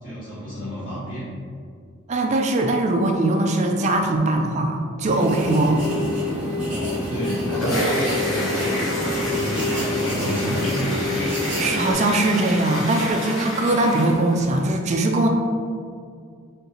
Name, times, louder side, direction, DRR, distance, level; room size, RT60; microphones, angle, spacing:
voice 1, 0.0-1.3 6.6-10.9, equal, 40° left, -12 dB, 1.1 m, -31 dB
voice 2, 2.1-5.9 9.7-9.8 10.1-10.2 11.6-15.3, right 2 dB, 35° right, 2 dB, 0.3 m, -21 dB
sound 1, 5.1-11.9, left 1 dB, 10° right, 1.3 m, -27 dB
sound 2, 7.3-14.6, equal, 80° left, 1.2 m, -29 dB
4.0 x 3.6 x 2.8 m, 2.2 s
head